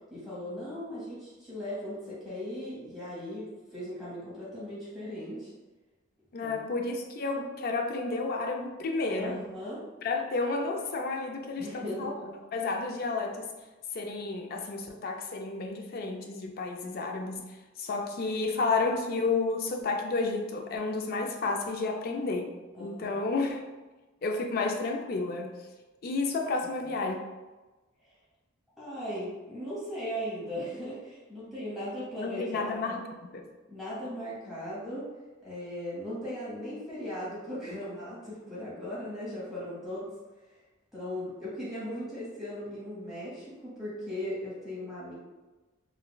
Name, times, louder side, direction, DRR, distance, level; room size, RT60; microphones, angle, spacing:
voice 1, 0.1-5.5 6.4-6.5 9.2-9.8 11.6-12.1 21.9-22.2 22.7-23.2 26.8-26.9 28.8-33.0 33.7-35.1 35.4-40.0 40.9-45.1, equal, ahead, -10 dB, 0.9 m, -38 dB
voice 2, 6.3-9.4 10.0-13.5 13.9-17.4 17.8-22.5 22.8-23.6 24.2-25.5 26.0-27.2 32.2-33.4, left 3 dB, 50° left, 3 dB, 0.3 m, -31 dB
3.8 x 2.2 x 2.2 m, 1.2 s
head